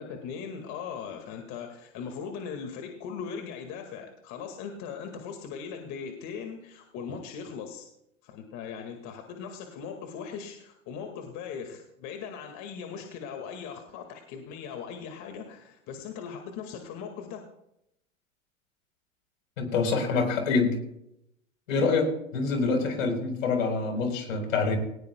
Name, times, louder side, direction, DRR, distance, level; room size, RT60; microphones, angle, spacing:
voice 1, 0.0-7.9 8.2-17.4, left 6 dB, 45° left, 4 dB, 2.0 m, -39 dB
voice 2, 19.6-20.8 21.7-24.8, left 4 dB, 75° left, 4 dB, 4.3 m, -26 dB
19.0 x 18.5 x 2.3 m, 0.81 s
hypercardioid pair, 110°, 40 cm